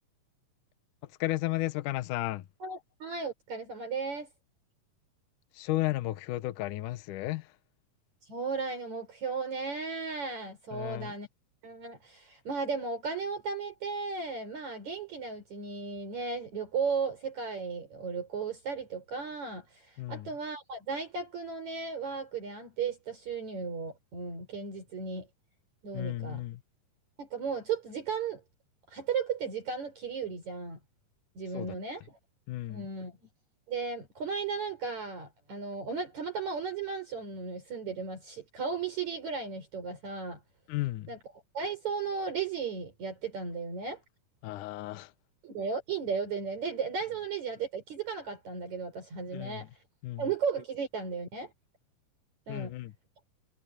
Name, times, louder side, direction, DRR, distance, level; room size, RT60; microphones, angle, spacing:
voice 1, 1.2-2.4 5.5-7.5 10.7-11.1 20.0-20.3 25.9-26.6 31.5-31.8 32.5-32.9 40.7-41.1 44.4-45.1 49.3-49.6 50.0-50.2 52.5-52.9, left 16 dB, 75° left, 2.4 m, -33 dB
voice 2, 2.6-4.3 8.2-11.3 11.6-25.3 25.8-26.4 27.2-28.4 28.9-30.8 31.3-32.2 32.7-33.2 33.7-40.4 41.1-41.2 41.5-44.0 45.4-49.8 50.2-51.5 52.5-52.7, right 5 dB, 55° right, 6.2 m, -35 dB
omnidirectional pair, 3.9 m